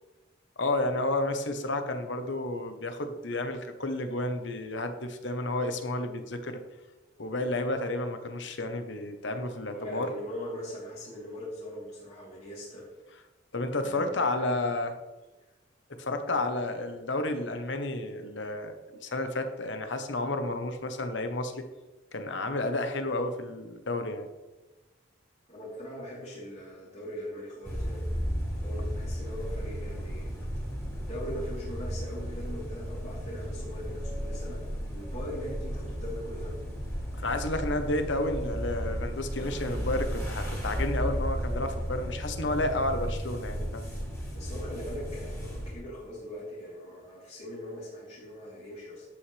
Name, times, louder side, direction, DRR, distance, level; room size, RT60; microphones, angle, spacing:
voice 1, 0.6-6.6 7.2-10.1 13.5-14.9 16.0-18.7 19.0-21.6 22.1-24.3 37.2-43.9, left 2 dB, 65° left, 7 dB, 1.1 m, -31 dB
voice 2, 9.7-12.9 13.8-14.7 25.5-28.0 28.6-30.3 31.0-36.6 44.3-49.0, equal, 35° left, -10 dB, 3.7 m, -41 dB
sound 1, 27.6-45.7, equal, 10° left, 3.9 m, -34 dB
12.0 x 8.9 x 3.4 m, 1.1 s
head